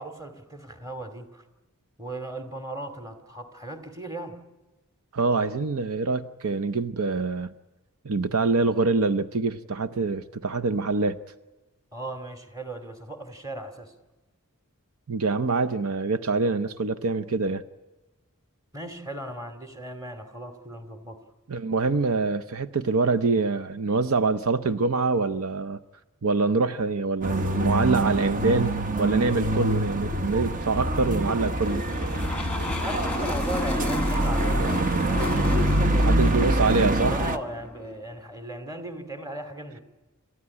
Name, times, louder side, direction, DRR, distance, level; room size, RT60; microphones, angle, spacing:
voice 1, 0.0-1.4 2.0-4.4 11.9-13.9 18.7-21.2 32.7-35.3 37.1-39.8, right 1 dB, 15° right, 2.4 m, -37 dB
voice 2, 5.1-7.5 8.0-11.2 15.1-17.6 21.5-25.8 26.2-31.9 35.9-37.1, right 3 dB, 70° right, 0.7 m, -25 dB
sound 1, 27.2-37.4, right 1 dB, 35° right, 1.0 m, -25 dB
sound 2, 31.5-38.0, left 2 dB, 5° left, 1.5 m, -32 dB
28.5 x 14.0 x 9.8 m
head